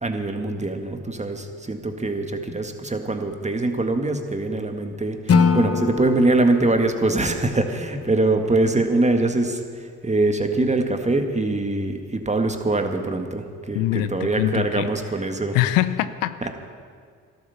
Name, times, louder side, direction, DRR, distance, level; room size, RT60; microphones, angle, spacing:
voice 1, 0.0-15.6 16.4-16.5, right 2 dB, 20° right, 5 dB, 1.9 m, -23 dB
Acoustic guitar / Strum, 5.3-8.4, left 5 dB, 45° left, 1.0 m, -24 dB
voice 2, 13.7-14.9 15.5-16.5, left 15 dB, 85° left, 13 dB, 0.6 m, -23 dB
13.0 x 12.0 x 7.0 m, 2.1 s
supercardioid pair, 50°, 33 cm